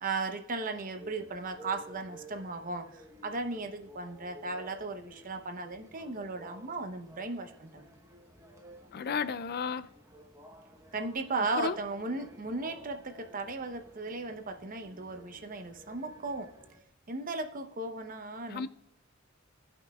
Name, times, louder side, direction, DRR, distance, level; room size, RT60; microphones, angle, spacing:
voice 1, 0.0-7.9 10.9-16.5 17.1-18.7, right 3 dB, 40° right, 0.8 m, -36 dB
sound 1, 0.7-16.8, right 1 dB, 15° right, 1.0 m, -54 dB
voice 2, 8.9-9.9 11.6-11.8 18.5-18.7, left 6 dB, 50° left, 0.4 m, -33 dB
17.5 x 5.9 x 2.3 m
head